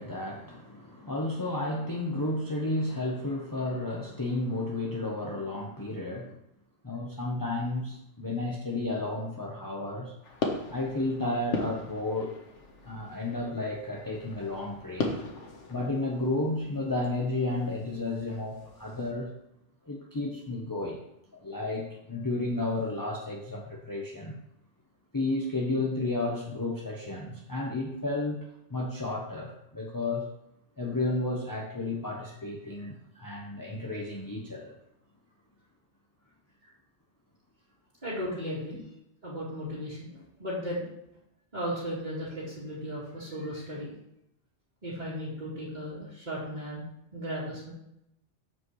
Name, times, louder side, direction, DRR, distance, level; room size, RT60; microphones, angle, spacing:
voice 1, 0.0-6.4 6.8-10.2 10.7-12.4 12.8-15.2 15.7-19.3 19.8-21.0 21.3-24.4 25.1-28.4 28.7-30.3 30.8-34.7, left 2 dB, 20° left, -2 dB, 0.9 m, -32 dB
sound 1, 10.2-19.1, left 3 dB, 90° left, 1.5 m, -39 dB
voice 2, 38.0-38.8 39.2-40.8 41.5-43.9 44.8-46.8 47.1-47.7, equal, 40° right, -9 dB, 2.3 m, -36 dB
14.5 x 5.0 x 3.2 m, 0.80 s
omnidirectional pair, 1.2 m